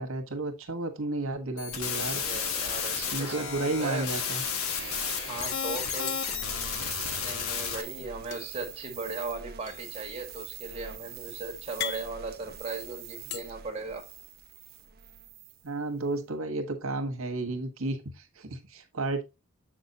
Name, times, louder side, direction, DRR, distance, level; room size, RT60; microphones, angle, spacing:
voice 1, 0.0-2.2 3.1-4.4 15.6-19.2, right 2 dB, 75° right, 1.4 m, -32 dB
sound 1, 1.6-7.8, left 6 dB, 85° left, 1.2 m, -32 dB
sound 2, 1.7-15.7, right 9 dB, 45° right, 0.7 m, -45 dB
voice 2, 2.1-4.1 5.2-6.2 7.2-14.1, right 3 dB, 30° right, 1.7 m, -38 dB
sound 3, 6.1-7.3 8.3-13.4, left 9 dB, 50° left, 0.6 m, -42 dB
7.5 x 6.1 x 2.8 m
head